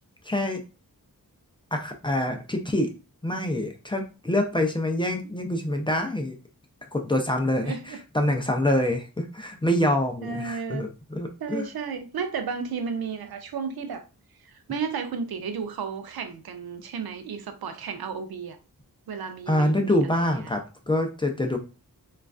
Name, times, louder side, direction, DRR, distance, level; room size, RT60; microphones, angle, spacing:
voice 1, 0.3-0.6 1.7-2.9 3.2-6.4 6.9-10.9 11.2-11.7 19.5-21.6, left 1 dB, 15° left, 0.4 m, -25 dB
voice 2, 7.6-8.0 10.2-10.9 11.4-14.0 14.4-18.6 19.1-20.5, right 6 dB, 90° right, 0.5 m, -33 dB
3.1 x 2.4 x 2.3 m
wide cardioid pair, 95°, 36 cm